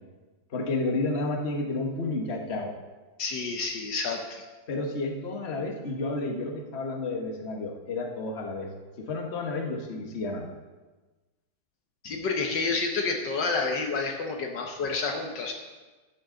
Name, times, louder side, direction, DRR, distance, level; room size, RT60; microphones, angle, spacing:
voice 1, 0.5-2.7 4.7-8.7 9.0-10.5, left 2 dB, 35° left, 1 dB, 1.4 m, -31 dB
voice 2, 3.2-4.4 12.0-15.5, left 4 dB, 65° left, 2 dB, 1.6 m, -29 dB
12.5 x 11.0 x 3.8 m, 1.2 s
omnidirectional pair, 2.1 m